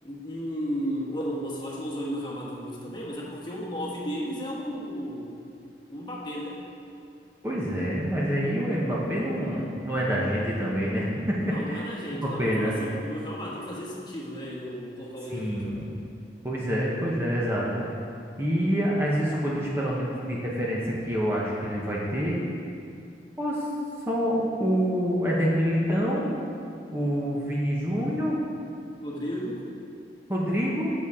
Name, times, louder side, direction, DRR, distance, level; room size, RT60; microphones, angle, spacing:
voice 1, 0.0-5.4 5.9-6.6 11.4-15.9 29.0-29.6, equal, 25° left, -4 dB, 1.3 m, -34 dB
voice 2, 7.4-11.3 11.7-11.8 12.2-12.7 15.3-15.9 16.4-17.8 18.4-22.4 23.4-23.7 24.1-26.3 26.9-28.4 30.3-30.9, equal, 15° right, -5 dB, 1.0 m, -26 dB
8.3 x 7.0 x 4.8 m, 2.5 s
head